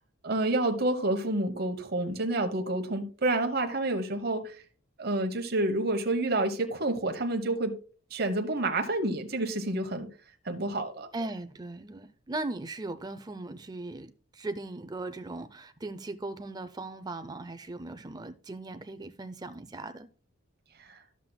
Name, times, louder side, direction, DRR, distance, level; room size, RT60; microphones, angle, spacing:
voice 1, 0.2-4.6 5.0-7.8 8.1-10.1 10.4-11.1 20.8-21.0, right 2 dB, 50° right, 0.9 m, -29 dB
voice 2, 11.1-20.1, right 2 dB, 20° right, 0.5 m, -38 dB
11.5 x 7.3 x 2.2 m
head